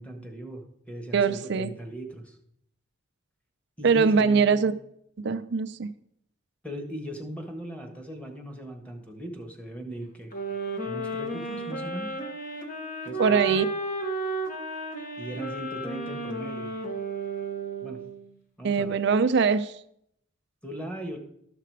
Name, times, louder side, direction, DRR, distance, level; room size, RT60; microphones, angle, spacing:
voice 1, 0.0-2.4 3.8-4.5 6.6-10.3 10.8-12.2 13.0-13.7 15.2-16.7 17.8-18.0 18.6-18.9 20.6-21.2, right 1 dB, 5° left, 4 dB, 1.3 m, -38 dB
voice 2, 1.1-1.7 3.8-4.7 5.2-5.9 13.2-13.7 18.6-19.7, right 5 dB, 60° right, 11 dB, 0.5 m, -22 dB
sound 1, 10.3-18.3, right 2 dB, 45° left, 1.3 m, -33 dB
12.5 x 5.9 x 4.7 m, 0.73 s
head